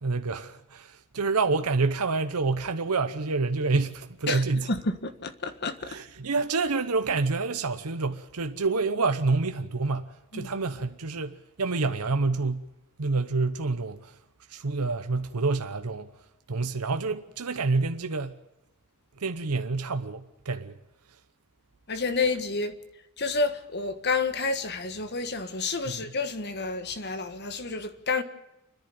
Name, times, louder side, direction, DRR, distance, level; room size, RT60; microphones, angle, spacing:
voice 1, 0.0-4.7 5.9-12.7 13.0-14.1 14.5-16.1 16.5-18.4 19.2-20.8 25.9-26.0, right 3 dB, 90° right, 0.9 m, -28 dB
voice 2, 4.7-5.9 10.3-10.5 21.9-22.7 23.2-28.2, left 3 dB, 45° left, 1.5 m, -29 dB
30.0 x 10.5 x 9.3 m
head